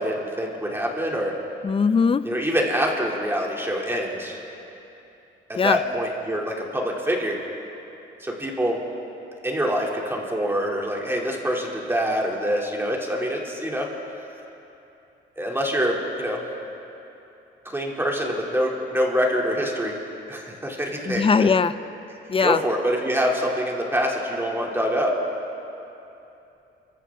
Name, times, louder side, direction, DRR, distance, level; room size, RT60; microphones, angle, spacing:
voice 1, 0.0-1.4 2.2-4.4 5.5-7.4 8.2-8.8 9.4-13.9 15.4-16.4 17.6-20.0 20.3-21.6 22.4-25.1, equal, 10° right, -1 dB, 2.9 m, -25 dB
voice 2, 1.6-2.2 5.6-5.8 21.1-21.7 22.3-22.6, left 5 dB, 25° left, 14 dB, 0.6 m, -20 dB
26.5 x 14.5 x 3.8 m, 2.8 s
cardioid pair, 90°, 20 cm